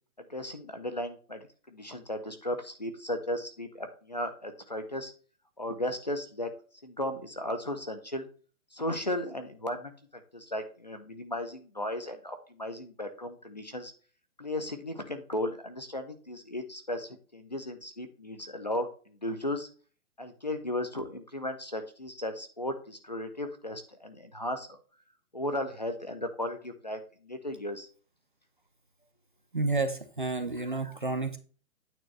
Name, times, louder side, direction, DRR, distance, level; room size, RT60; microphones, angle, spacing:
voice 1, 0.2-5.1 5.6-6.5 6.8-8.3 8.7-13.9 14.4-19.7 20.2-24.8 25.3-27.9, left 1 dB, 30° left, 8 dB, 0.7 m, -35 dB
voice 2, 29.5-31.4, right 3 dB, 35° right, 8 dB, 0.6 m, -30 dB
9.1 x 3.1 x 5.9 m, 0.39 s
hypercardioid pair, 180°, 43 cm